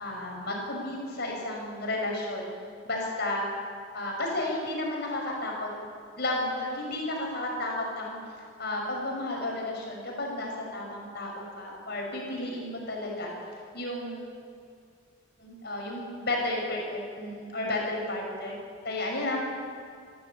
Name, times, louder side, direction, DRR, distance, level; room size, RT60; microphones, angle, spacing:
voice 1, 0.0-2.5 2.8-3.5 3.9-5.7 6.2-8.2 8.6-13.3 13.7-14.3 15.4-18.5 18.8-19.4, left 2 dB, 50° left, 0 dB, 6.1 m, -32 dB
25.5 x 13.0 x 8.6 m, 2.3 s
head